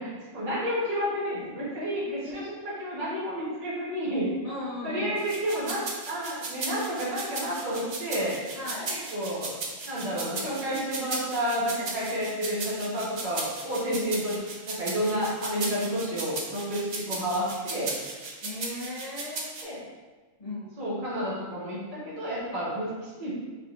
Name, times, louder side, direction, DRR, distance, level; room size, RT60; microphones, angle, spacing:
voice 1, 0.0-4.3 4.8-5.8 6.0-8.4 8.9-9.6 9.8-14.4 14.7-17.9 19.6-19.8 20.8-23.3, equal, 40° right, -8 dB, 1.2 m, -30 dB
voice 2, 4.4-5.3 8.5-9.0 13.9-14.2 18.4-19.7 20.4-20.7, left 1 dB, 45° left, -7 dB, 0.5 m, -37 dB
sound 1, 5.2-19.6, right 3 dB, 80° right, 0.3 m, -36 dB
3.8 x 3.4 x 2.4 m, 1.3 s
omnidirectional pair, 1.4 m